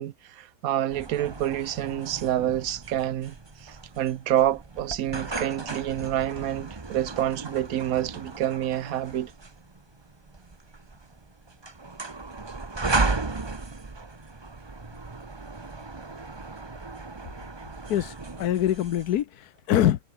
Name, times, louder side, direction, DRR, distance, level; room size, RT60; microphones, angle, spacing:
voice 1, 0.0-3.3 3.6-9.3, right 12 dB, 60° right, 1.1 m, -28 dB
sound 1, 0.9-19.2, right 3 dB, 20° right, 0.8 m, -35 dB
voice 2, 17.9-20.0, left 11 dB, 65° left, 1.3 m, -24 dB
omnidirectional pair, 1.9 m